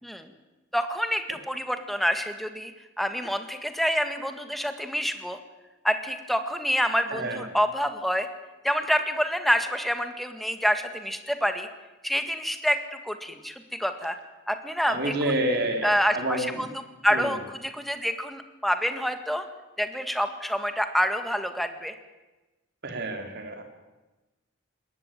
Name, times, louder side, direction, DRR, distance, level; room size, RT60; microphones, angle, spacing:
voice 1, 0.0-0.3 0.7-2.7 3.0-5.4 5.8-8.3 8.6-11.7 12.0-14.2 14.5-15.4 15.8-16.7 17.0-19.4 19.8-21.9, equal, ahead, 7 dB, 1.8 m, -27 dB
voice 2, 7.1-7.4 14.9-16.7 17.1-17.3 22.8-23.6, right 1 dB, 55° right, 5 dB, 3.6 m, -29 dB
21.5 x 18.0 x 9.2 m, 1.1 s
head